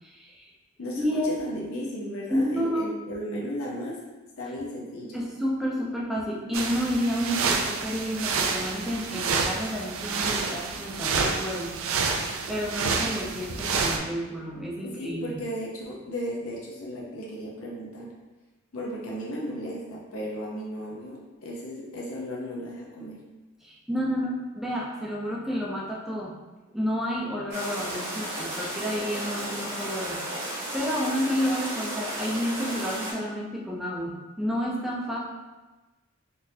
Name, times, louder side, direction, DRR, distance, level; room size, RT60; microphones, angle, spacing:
voice 1, 0.0-0.5 1.0-1.4 2.3-3.0 5.1-11.7 12.5-15.4 23.6-26.3 26.7-35.2, equal, ahead, -5 dB, 0.5 m, -30 dB
voice 2, 0.8-4.0 4.4-5.2 14.9-18.1 18.7-23.2, equal, 80° left, -3 dB, 0.7 m, -35 dB
sound 1, 6.5-14.0, right 4 dB, 70° right, 0.4 m, -28 dB
sound 2, 27.5-33.1, right 1 dB, 55° right, 1.2 m, -34 dB
3.9 x 2.6 x 2.6 m, 1.1 s
head